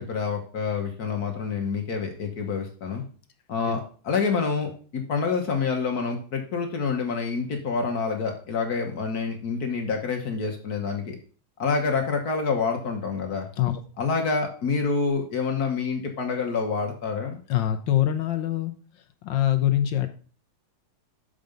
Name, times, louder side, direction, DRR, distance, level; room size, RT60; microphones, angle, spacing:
voice 1, 0.0-3.0 3.5-11.2 11.6-13.5 14.0-17.4, left 5 dB, 50° left, 3 dB, 1.5 m, -27 dB
voice 2, 17.5-18.7 19.2-20.1, left 12 dB, 65° left, 8 dB, 1.3 m, -23 dB
6.7 x 5.1 x 5.1 m, 0.39 s
omnidirectional pair, 2.4 m